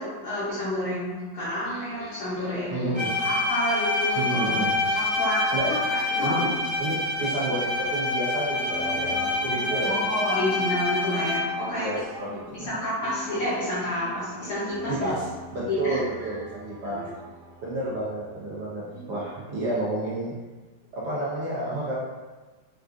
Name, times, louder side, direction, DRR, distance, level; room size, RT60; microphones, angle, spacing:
voice 1, 0.0-5.4 5.9-6.3 9.8-11.9 12.2-15.1 15.7-16.0 16.8-17.1 18.9-19.1, left 1 dB, 60° left, -10 dB, 1.2 m, -30 dB
sound 1, 1.7-8.2 8.7-12.7 13.0-18.8, left 3 dB, 80° left, 1.3 m, -45 dB
voice 2, 2.7-3.1 4.1-4.7 5.5-5.7 6.2-6.5 6.8-10.0 11.8-12.8 14.9-15.2 15.5-17.0 17.6-20.3 20.9-22.0, right 1 dB, 85° right, -7 dB, 0.5 m, -30 dB
Bowed string instrument, 2.9-11.7, left 2 dB, 30° right, 1.0 m, -27 dB
sound 2, 8.5-18.3, right 2 dB, 55° right, 1.2 m, -46 dB
3.6 x 2.5 x 2.4 m, 1.3 s
omnidirectional pair, 2.0 m